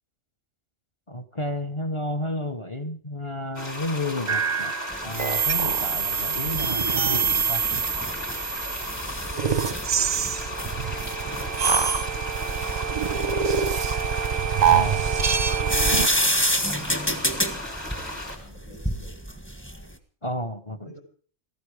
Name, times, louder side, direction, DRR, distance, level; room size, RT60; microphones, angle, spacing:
voice 1, 1.1-4.8 5.0-7.7 14.6-15.0 20.2-21.0, left 1 dB, 25° left, 9 dB, 1.2 m, -31 dB
sound 1, 3.5-18.4, left 1 dB, 50° left, 4.9 m, -36 dB
sound 2, 4.3-16.1, right 7 dB, 40° right, 0.8 m, -25 dB
sound 3, 4.9-19.9, equal, 10° left, 1.6 m, -30 dB
voice 2, 9.2-9.9 10.2-13.9 14.7-17.9 18.4-19.2 20.8-21.0, left 1 dB, 85° left, -5 dB, 6.2 m, -51 dB
17.0 x 14.5 x 5.0 m, 0.43 s
omnidirectional pair, 1.3 m